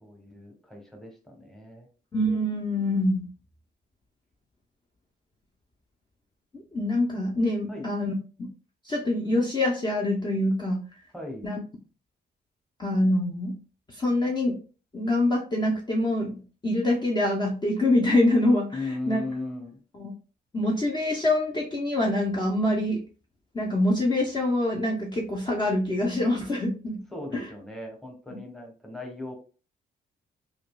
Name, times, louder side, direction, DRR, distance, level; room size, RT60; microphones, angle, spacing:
voice 1, 0.0-1.9 7.7-7.9 11.1-11.5 18.7-19.8 27.1-29.3, left 2 dB, ahead, 1 dB, 1.0 m, -37 dB
voice 2, 2.1-3.3 6.5-8.1 8.8-10.8 11.4-11.6 12.8-13.5 13.9-14.6 14.9-18.7 19.1-19.2 20.0-20.1 20.5-23.0 23.5-27.0 27.3-27.4, left 1 dB, 25° left, -2 dB, 0.8 m, -25 dB
5.0 x 2.5 x 2.2 m, 0.36 s
cardioid pair, 135°, 19 cm